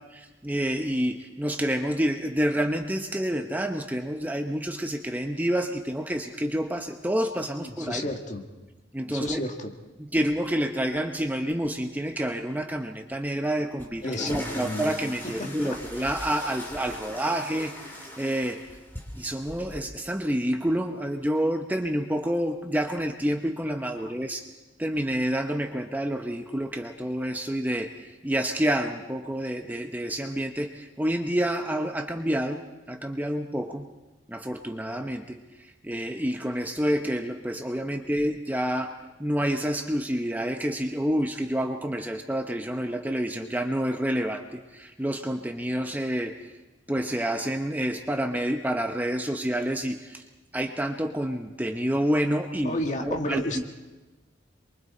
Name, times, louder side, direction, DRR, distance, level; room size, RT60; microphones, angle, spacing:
voice 1, 0.1-8.0 8.9-9.4 10.1-18.6 19.2-24.5 24.8-33.9 34.3-35.4 35.8-46.4 46.9-50.2 50.5-53.6, equal, 10° right, 4 dB, 0.9 m, -28 dB
voice 2, 7.6-8.4 9.1-9.7 14.0-14.8 15.4-15.8 24.0-24.1 52.6-53.7, left 1 dB, 40° left, 3 dB, 1.9 m, -32 dB
sound 1, 13.8-19.8, equal, 10° left, 3.2 m, -40 dB
28.0 x 23.0 x 4.3 m, 1.1 s
head